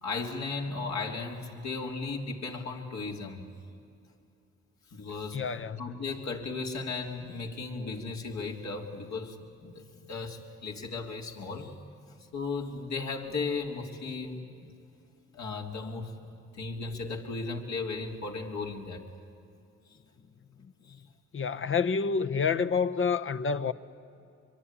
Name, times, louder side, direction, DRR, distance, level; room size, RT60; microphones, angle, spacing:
voice 1, 0.0-3.4 4.9-11.8 12.3-14.7 15.3-16.2 16.5-19.0 19.9-20.0 20.9-21.0 22.2-22.4, left 4 dB, 65° left, 3.5 m, -36 dB
voice 2, 5.3-5.8 20.6-21.1 21.3-23.7, left 5 dB, 45° left, 1.1 m, -29 dB
24.5 x 23.0 x 9.9 m
supercardioid pair, 65°, 30 cm